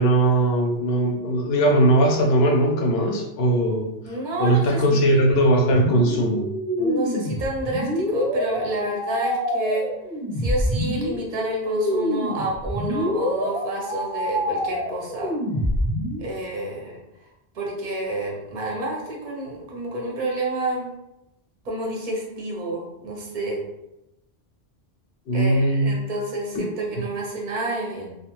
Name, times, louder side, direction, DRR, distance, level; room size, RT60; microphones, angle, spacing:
voice 1, 0.0-3.9 4.4-6.5 25.3-25.9, right 1 dB, 65° left, 0 dB, 0.8 m, -19 dB
voice 2, 4.0-5.3 6.8-9.9 10.3-15.3 16.2-17.3 17.5-20.9 21.6-23.6 25.3-28.2, right 1 dB, 45° right, -2 dB, 0.8 m, -29 dB
sound 1, 5.7-16.2, equal, 5° right, 0.4 m, -26 dB
2.4 x 2.3 x 3.0 m, 0.90 s
omnidirectional pair, 1.2 m